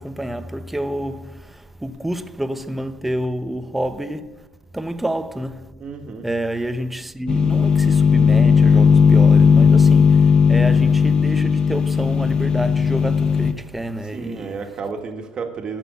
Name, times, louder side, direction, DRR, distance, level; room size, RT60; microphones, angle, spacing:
voice 1, 0.0-4.4 4.7-5.7 6.2-14.6, right 1 dB, 5° right, 0.8 m, -28 dB
voice 2, 5.8-6.3 14.1-15.8, right 5 dB, 40° right, 1.8 m, -31 dB
sound 1, 7.3-13.5, left 6 dB, 35° left, 0.9 m, -15 dB
12.5 x 6.2 x 8.3 m
supercardioid pair, 105°, 2 cm